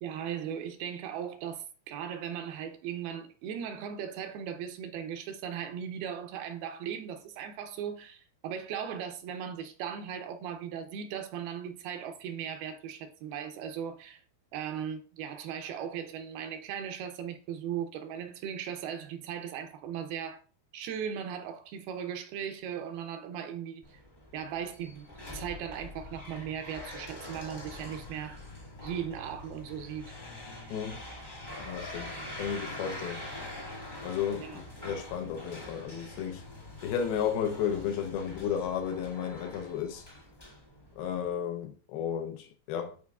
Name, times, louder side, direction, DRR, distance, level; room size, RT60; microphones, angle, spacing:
voice 1, 0.0-14.2 14.5-20.4 20.7-24.0 24.3-25.1 25.3-28.4 28.8-30.1 34.4-34.6, right 8 dB, 80° right, 2.6 m, -38 dB
sound 1, 23.8-41.3, left 1 dB, 25° left, 1.0 m, -44 dB
voice 2, 30.7-31.0 31.6-33.3 34.0-36.4 36.8-40.1 41.0-43.0, left 8 dB, 75° left, 2.6 m, -33 dB
10.5 x 4.4 x 2.4 m
omnidirectional pair, 4.6 m